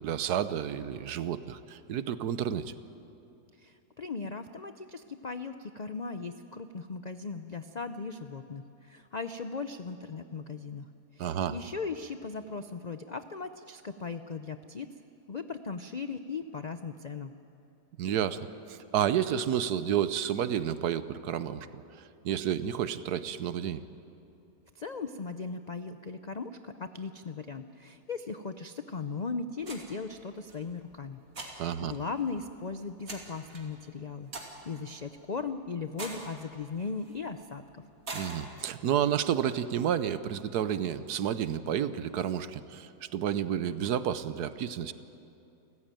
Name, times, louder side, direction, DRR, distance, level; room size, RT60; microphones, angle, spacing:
voice 1, 0.0-2.7 11.2-11.6 18.0-18.4 18.7-21.8 22.2-23.8 31.6-31.9 38.1-44.9, right 9 dB, 75° right, 13 dB, 1.4 m, -30 dB
voice 2, 3.5-14.9 15.3-17.3 24.7-34.3 34.6-37.8, left 4 dB, 90° left, 9 dB, 0.3 m, -38 dB
sound 1, 29.6-39.4, right 2 dB, 55° right, 3.0 m, -47 dB
30.0 x 14.5 x 9.0 m, 2.7 s
omnidirectional pair, 1.7 m